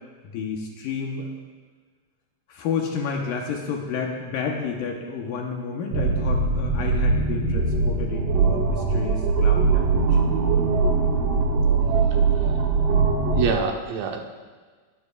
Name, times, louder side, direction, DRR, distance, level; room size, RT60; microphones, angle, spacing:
voice 1, 0.3-1.3 2.5-10.2, left 5 dB, 80° left, 0 dB, 2.7 m, -30 dB
sound 1, 5.9-13.5, right 4 dB, 60° right, 1.8 m, -21 dB
voice 2, 13.3-14.3, right 5 dB, 85° right, 2 dB, 2.9 m, -26 dB
21.5 x 12.0 x 2.4 m, 1.4 s
omnidirectional pair, 4.0 m